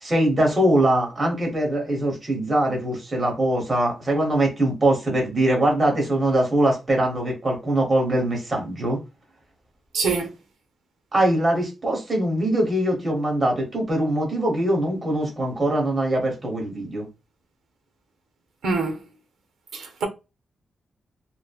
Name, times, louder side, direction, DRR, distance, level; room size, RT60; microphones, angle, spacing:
voice 1, 0.0-9.0 11.1-17.1, right 1 dB, 25° right, 1.1 m, -22 dB
voice 2, 9.9-10.3 18.6-19.0 19.7-20.1, right 4 dB, 90° right, 0.7 m, -24 dB
3.1 x 2.1 x 2.3 m
wide cardioid pair, 150°, 0 cm